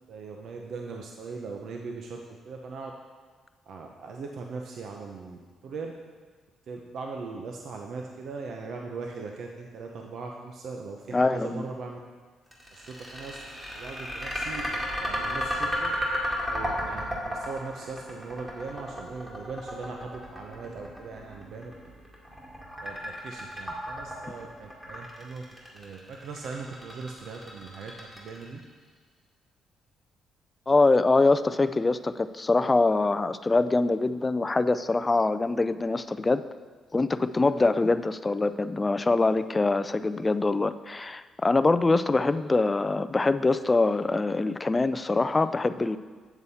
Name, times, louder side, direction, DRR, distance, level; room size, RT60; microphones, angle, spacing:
voice 1, 0.1-2.9 3.7-5.9 6.7-12.0 12.7-13.4 13.7-15.9 16.5-21.9 22.8-25.4 25.7-28.6 31.6-31.7, right 4 dB, 65° right, 2 dB, 0.7 m, -39 dB
voice 2, 11.1-11.7 30.7-36.4 36.9-46.0, left 3 dB, 20° left, 13 dB, 0.3 m, -24 dB
sound 1, 12.5-28.6, equal, 10° right, 2.2 m, -33 dB
8.1 x 7.1 x 4.1 m, 1.5 s
cardioid pair, 90°, 0 cm